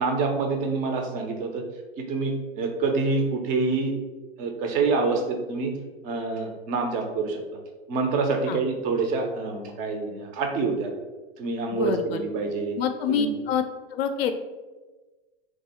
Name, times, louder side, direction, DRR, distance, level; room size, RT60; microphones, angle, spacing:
voice 1, 0.0-1.6 2.0-3.9 4.4-5.7 6.0-7.4 7.9-10.9 11.4-12.8 13.1-13.3, right 4 dB, 25° right, 4 dB, 0.5 m, -26 dB
voice 2, 11.7-12.2 12.8-13.6 13.9-14.3, left 7 dB, 70° left, 7 dB, 0.5 m, -26 dB
3.4 x 2.4 x 4.1 m, 1.2 s
supercardioid pair, 150°, 31 cm